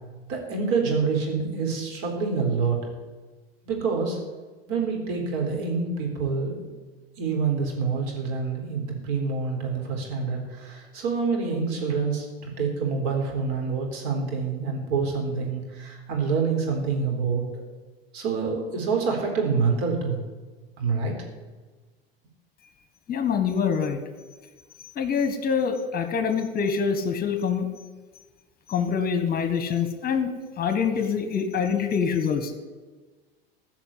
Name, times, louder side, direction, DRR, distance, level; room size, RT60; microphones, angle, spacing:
voice 1, 0.3-2.8 3.6-4.2 4.7-6.7 7.2-17.4 18.1-20.2 20.8-21.2, right 5 dB, 55° right, 1 dB, 4.0 m, -27 dB
voice 2, 23.1-24.0 24.9-27.7 28.7-30.3 30.6-32.5, left 6 dB, 30° left, 8 dB, 1.6 m, -25 dB
15.0 x 5.9 x 8.6 m, 1.3 s
hypercardioid pair, 90°, 30 cm